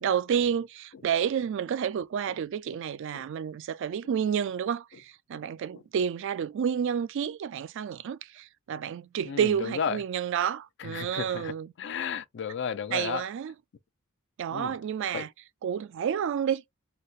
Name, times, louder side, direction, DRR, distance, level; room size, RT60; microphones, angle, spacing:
voice 1, 0.0-11.7 12.9-13.5 14.4-15.3 15.6-16.6, right 8 dB, 60° right, 0.3 m, -30 dB
voice 2, 9.2-10.0 10.8-11.5 11.8-13.2 14.5-14.7 15.1-15.2, left 7 dB, 55° left, 0.4 m, -33 dB
4.0 x 2.1 x 2.4 m
head